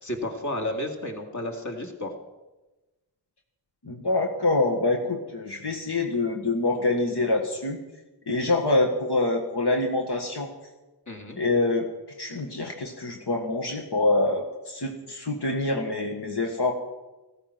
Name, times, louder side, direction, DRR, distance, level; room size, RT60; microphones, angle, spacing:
voice 1, 0.0-2.1 11.1-11.4, left 1 dB, 45° left, 2 dB, 2.4 m, -32 dB
voice 2, 3.8-7.8 8.3-10.5 11.4-11.9 12.2-16.7, left 2 dB, 75° left, 2 dB, 1.7 m, -25 dB
16.5 x 14.0 x 6.0 m, 1.1 s
wide cardioid pair, 75°, 40 cm